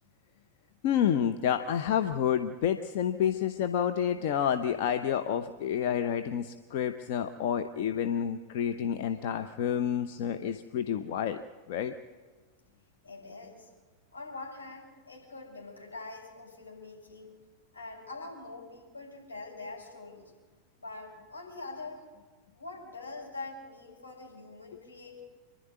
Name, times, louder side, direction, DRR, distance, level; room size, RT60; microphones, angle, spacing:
voice 1, 0.8-11.4 11.7-11.9, left 9 dB, 50° left, 7 dB, 0.9 m, -29 dB
voice 2, 13.0-13.7 14.1-17.4 17.7-20.3 20.8-22.0 22.5-25.2, left 3 dB, 75° left, -1 dB, 6.9 m, -44 dB
27.0 x 11.5 x 9.3 m, 1.4 s
figure-of-eight pair, 90°, 0 cm